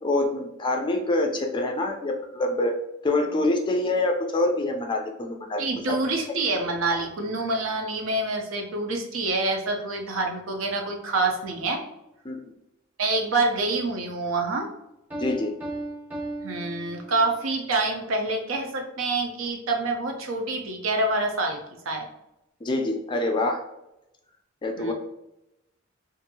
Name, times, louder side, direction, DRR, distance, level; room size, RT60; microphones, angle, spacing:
voice 1, 0.0-2.7 3.0-5.6 5.9-6.0 12.2-12.4 15.2-15.5 22.6-23.6 24.6-24.9, left 2 dB, 25° left, 3 dB, 0.3 m, -25 dB
voice 2, 5.6-11.8 13.0-14.7 16.4-21.6 21.9-22.1 24.8-24.9, right 2 dB, 75° right, 3 dB, 0.6 m, -26 dB
Piano, 15.1-17.6, right 2 dB, 10° right, 0.8 m, -36 dB
2.7 x 2.5 x 2.7 m, 0.88 s
head